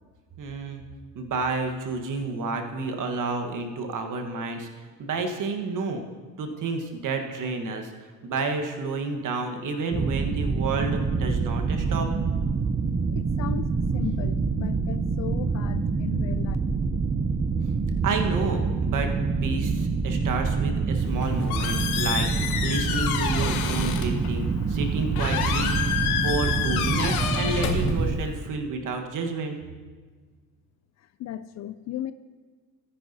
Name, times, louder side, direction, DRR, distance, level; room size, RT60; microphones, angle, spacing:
voice 1, 0.4-0.8 1.1-4.7 5.0-6.0 6.4-7.9 8.2-12.1 18.0-19.1 19.4-29.6, right 3 dB, 45° right, 4 dB, 1.5 m, -30 dB
sound 1, 9.9-28.2, right 4 dB, 20° right, 0.7 m, -26 dB
voice 2, 13.1-16.6 31.0-32.1, left 11 dB, 40° left, 13 dB, 0.5 m, -36 dB
Squeak, 21.0-28.5, left 7 dB, 85° left, 1.0 m, -29 dB
14.0 x 9.8 x 2.8 m, 1.4 s
hypercardioid pair, 70°, 43 cm